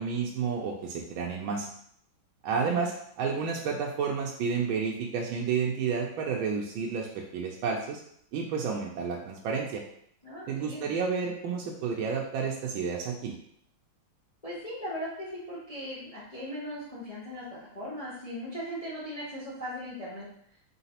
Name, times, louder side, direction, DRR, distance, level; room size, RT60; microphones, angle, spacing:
voice 1, 0.0-1.7 2.4-8.0 8.3-9.8 10.5-13.3, right 5 dB, 80° right, -1 dB, 1.3 m, -31 dB
voice 2, 2.5-2.8 10.2-10.8 14.4-20.3, equal, 40° left, -8 dB, 0.5 m, -38 dB
3.9 x 3.8 x 2.9 m, 0.68 s
omnidirectional pair, 2.3 m